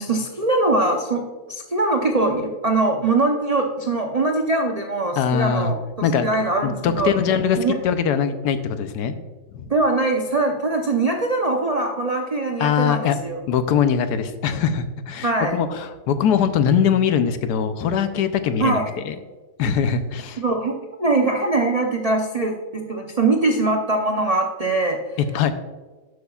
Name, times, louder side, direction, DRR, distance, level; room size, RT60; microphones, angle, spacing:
voice 1, 0.0-7.1 7.6-7.7 9.7-13.4 15.2-15.6 18.6-18.8 20.4-20.7 21.0-25.0, right 2 dB, 60° right, 2 dB, 0.4 m, -22 dB
voice 2, 5.2-5.7 6.0-6.3 6.6-9.2 9.5-9.7 12.6-13.2 13.5-19.2 19.6-20.4 25.2-25.5, left 7 dB, 75° left, 10 dB, 1.2 m, -22 dB
11.5 x 8.1 x 2.4 m, 1.3 s
omnidirectional pair, 1.8 m